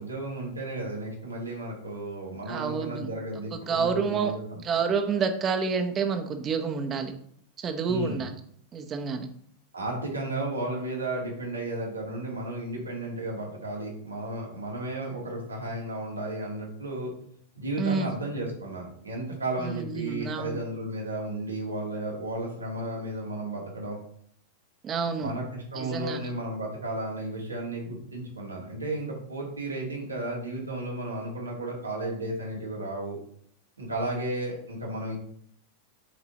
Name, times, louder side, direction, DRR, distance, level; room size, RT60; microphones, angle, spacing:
voice 1, 0.0-4.6 7.9-8.2 9.7-17.1 17.6-24.0 25.2-33.2 33.8-35.2, right 1 dB, 90° right, -2 dB, 1.9 m, -33 dB
voice 2, 2.5-3.1 3.5-4.3 4.6-7.1 7.6-8.3 8.7-9.3 17.8-18.1 19.6-20.6 24.8-25.3 25.7-26.2, right 5 dB, 30° right, 6 dB, 0.9 m, -28 dB
8.6 x 3.9 x 3.0 m, 0.63 s
figure-of-eight pair, 90°, 0 cm